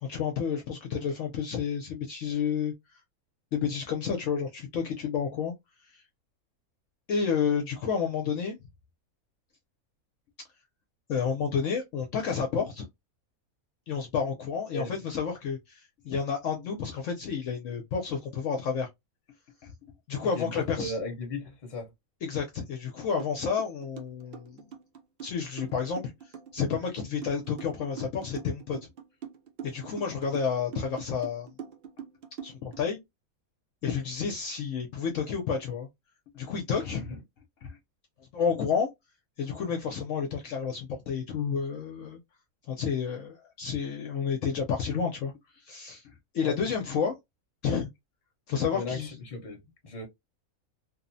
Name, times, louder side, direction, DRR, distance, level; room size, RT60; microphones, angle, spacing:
voice 1, 0.0-2.7 3.5-5.5 5.9-6.0 7.1-8.6 11.1-12.9 13.9-18.9 19.6-19.7 20.1-20.9 22.2-24.7 25.2-26.1 26.5-28.9 29.6-31.5 32.4-33.0 33.8-35.9 36.3-37.1 37.6-37.8 38.3-38.9 39.4-42.2 42.7-45.3 45.7-46.0 46.3-47.1 47.6-47.9 48.5-49.1, left 6 dB, 70° left, 0.9 m, -30 dB
voice 2, 14.7-15.1 20.2-21.9 37.0-37.2 46.4-46.6 48.7-50.0, left 3 dB, 30° left, 0.9 m, -37 dB
sound 1, 23.2-23.3 23.6-32.8, right 8 dB, 60° right, 0.6 m, -43 dB
2.9 x 2.0 x 2.5 m
omnidirectional pair, 1.5 m